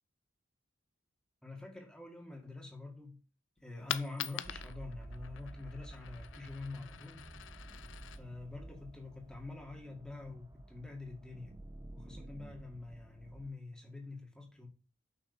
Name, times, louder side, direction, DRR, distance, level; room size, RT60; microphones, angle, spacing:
voice 1, 1.4-3.2 3.6-7.3 8.2-11.5 11.9-14.7, left 3 dB, 5° left, 1.8 m, -46 dB
Coin (dropping), 3.6-9.6, left 10 dB, 65° left, 0.5 m, -45 dB
sound 1, 4.4-13.5, right 1 dB, 15° right, 0.5 m, -51 dB
6.6 x 5.7 x 6.8 m
head